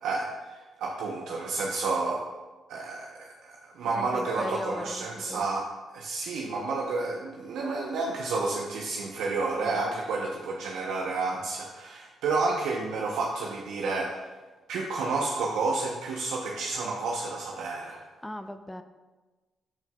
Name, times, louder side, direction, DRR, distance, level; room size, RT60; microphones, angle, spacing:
voice 1, 0.0-2.3 2.7-14.2 14.7-18.0, right 3 dB, 80° right, -1 dB, 0.7 m, -30 dB
voice 2, 4.0-5.5 9.6-9.9 18.2-18.8, left 1 dB, 10° left, 8 dB, 0.5 m, -38 dB
13.5 x 4.6 x 2.3 m, 1.2 s
supercardioid pair, 50°, 0 cm